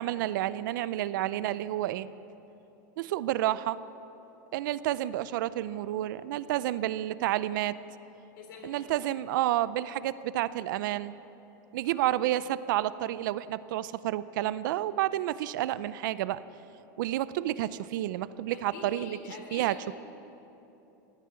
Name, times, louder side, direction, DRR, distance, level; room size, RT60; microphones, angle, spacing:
voice 1, 0.0-2.1 3.0-3.8 4.5-7.8 8.6-11.1 11.7-16.4 17.0-19.2 19.5-19.8, right 14 dB, 75° right, 16 dB, 0.5 m, -30 dB
voice 2, 0.7-1.6 8.3-9.2 11.8-12.1 18.5-19.9, left 4 dB, 75° left, 2 dB, 3.5 m, -47 dB
16.0 x 10.0 x 8.7 m, 3.0 s
supercardioid pair, 130°, 11 cm